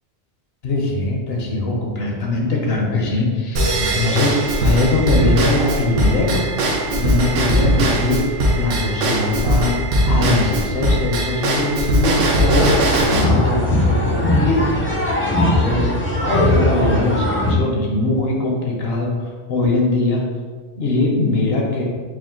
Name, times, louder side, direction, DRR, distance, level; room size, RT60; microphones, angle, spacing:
voice 1, 0.6-6.5 6.9-9.7 10.0-12.7 13.0-14.9 15.4-15.9 16.2-20.2 20.8-21.8, left 2 dB, 60° left, -1 dB, 0.8 m, -21 dB
Drum kit / Drum / Bell, 3.6-13.2, right 1 dB, 80° right, 1.0 m, -19 dB
sound 1, 12.3-17.5, left 1 dB, 15° left, 0.4 m, -19 dB
4.8 x 2.1 x 3.7 m, 1.5 s
omnidirectional pair, 1.2 m